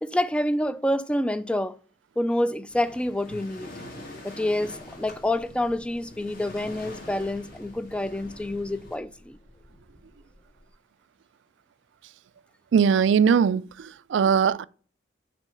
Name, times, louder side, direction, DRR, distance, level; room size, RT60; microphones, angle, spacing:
voice 1, 0.0-1.8 2.2-3.7 4.2-9.4, left 1 dB, 5° left, 0.3 m, -27 dB
Waves surf, 2.7-9.0, left 1 dB, 50° left, 2.1 m, -44 dB
sound 1, 4.6-10.7, equal, 30° left, 2.1 m, -55 dB
voice 2, 12.7-14.6, right 7 dB, 70° right, 0.3 m, -20 dB
6.1 x 4.6 x 6.5 m
head